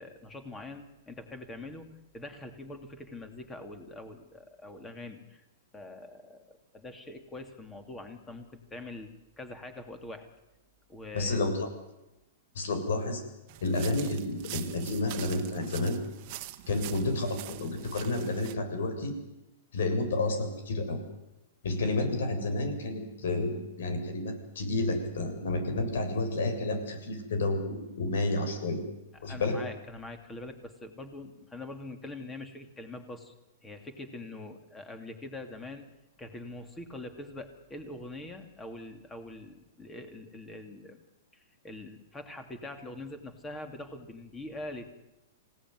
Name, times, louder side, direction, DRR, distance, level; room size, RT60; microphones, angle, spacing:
voice 1, 0.0-5.4 5.7-9.1 9.4-10.3 10.9-11.4 29.1-33.3 33.6-35.9 36.2-41.0 41.3-44.9, left 2 dB, 10° left, 7 dB, 2.7 m, -43 dB
voice 2, 11.1-11.7 12.6-13.2 13.6-16.0 16.7-19.1 19.7-21.0 21.6-28.8 29.2-29.6, left 2 dB, 75° left, 6 dB, 7.3 m, -30 dB
sound 1, 13.5-18.5, right 15 dB, 35° right, 1.6 m, -44 dB
26.5 x 18.0 x 9.5 m, 0.98 s
hypercardioid pair, 165°, 0 cm